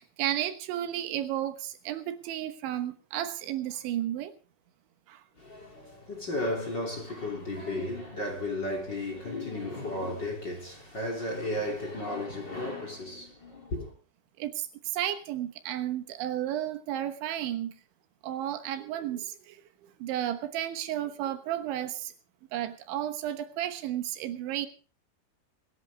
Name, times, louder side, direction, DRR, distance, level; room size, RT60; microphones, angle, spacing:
voice 1, 0.0-4.3 5.1-5.2 14.4-17.7 18.2-22.1 22.5-24.7, right 12 dB, 80° right, 3.5 m, -33 dB
voice 2, 5.4-13.9, left 1 dB, 25° left, 3.1 m, -34 dB
25.0 x 11.0 x 3.6 m
omnidirectional pair, 5.3 m